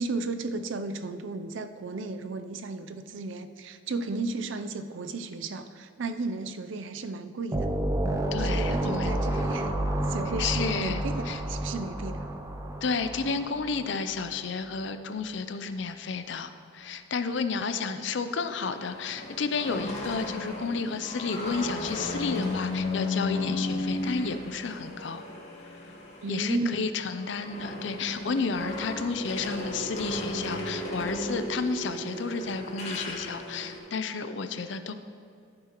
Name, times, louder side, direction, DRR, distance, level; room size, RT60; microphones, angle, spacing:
voice 1, 0.0-7.7 8.4-9.7 10.1-12.3 26.2-27.0, right 3 dB, 75° right, 10 dB, 0.5 m, -34 dB
sound 1, 7.5-14.0, right 1 dB, 15° right, 0.5 m, -30 dB
voice 2, 8.3-9.1 10.4-11.0 11.3-11.4 12.8-25.3 26.3-34.9, left 4 dB, 65° left, 10 dB, 0.5 m, -31 dB
sound 2, 18.2-26.6 26.9-33.8, left 2 dB, 35° left, 1.6 m, -34 dB
11.5 x 9.4 x 3.0 m, 2.6 s
head